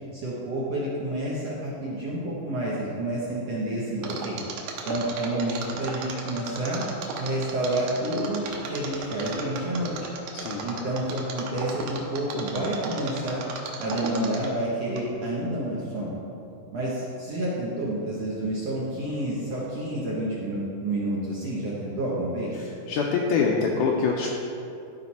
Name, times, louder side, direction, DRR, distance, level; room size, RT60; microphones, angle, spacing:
voice 1, 0.1-4.4 4.9-6.8 7.2-10.1 10.6-13.4 13.8-16.1 16.7-22.7, right 1 dB, 65° right, -6 dB, 1.7 m, -29 dB
Mechanisms, 4.0-14.6 15.0-15.1, right 5 dB, 90° right, 2.8 m, -35 dB
voice 2, 10.3-10.7 22.5-24.3, left 5 dB, 80° left, -1 dB, 1.8 m, -25 dB
13.5 x 5.2 x 4.2 m, 2.8 s
omnidirectional pair, 4.2 m